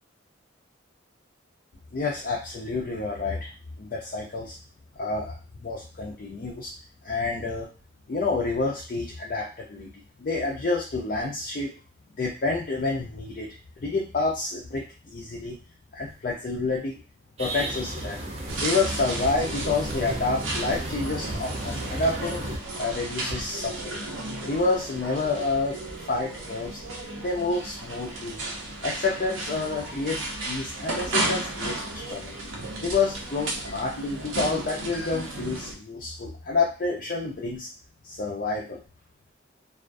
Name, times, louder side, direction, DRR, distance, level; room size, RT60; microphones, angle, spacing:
voice 1, 1.9-3.5 3.8-4.6 5.0-6.7 7.0-7.7 8.1-9.9 10.2-11.8 12.2-15.6 15.9-17.0 17.4-18.2 18.6-22.4 22.8-24.1 24.4-26.8 27.2-28.4 28.8-32.4 32.8-37.7 38.0-38.8, left 3 dB, 45° left, -2 dB, 0.4 m, -29 dB
sound 1, 17.4-22.6, right 1 dB, 30° right, 0.4 m, -34 dB
sound 2, 18.5-35.8, right 2 dB, 80° right, 0.6 m, -34 dB
2.4 x 2.2 x 2.5 m, 0.34 s
head